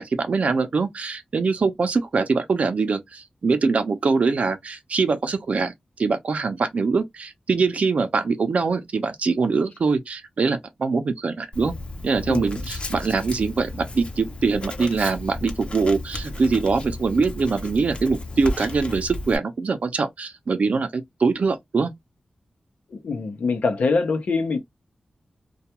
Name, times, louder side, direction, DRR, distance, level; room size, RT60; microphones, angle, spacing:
voice 1, 0.0-5.7 6.0-11.7 12.0-21.9, right 4 dB, 70° right, 0.6 m, -23 dB
Writing, 11.5-19.4, left 1 dB, 50° left, 0.7 m, -34 dB
voice 2, 12.3-12.6 22.9-24.6, left 4 dB, 85° left, 0.7 m, -24 dB
2.3 x 2.2 x 2.8 m
wide cardioid pair, 70°, 2 cm